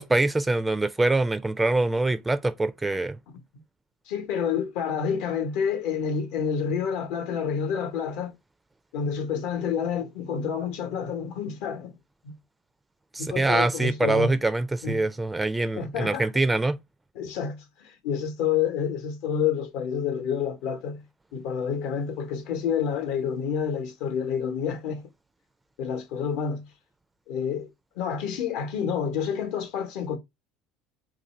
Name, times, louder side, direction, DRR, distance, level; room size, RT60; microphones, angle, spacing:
voice 1, 0.0-3.2 13.1-16.8, right 2 dB, 10° right, 0.3 m, -24 dB
voice 2, 4.1-8.3 8.9-11.9 12.2-12.4 13.2-14.4 14.8-15.0 15.7-16.3 17.1-21.0 21.3-25.1 25.8-26.7 27.3-27.7 28.0-30.2, left 7 dB, 75° left, 0.8 m, -29 dB
3.1 x 2.6 x 4.1 m
supercardioid pair, 115°, 0 cm